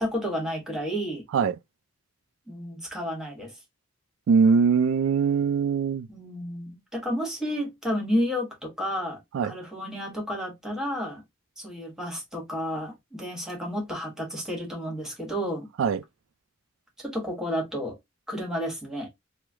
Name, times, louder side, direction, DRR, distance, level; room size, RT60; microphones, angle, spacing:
voice 1, 0.0-1.2 2.5-3.5 6.1-11.2 11.6-15.7 17.0-17.9 18.3-19.1, equal, 5° right, 1.3 m, -31 dB
voice 2, 4.3-6.1 9.3-9.5 15.8-16.0, right 5 dB, 70° right, 0.3 m, -22 dB
3.1 x 2.0 x 3.5 m
head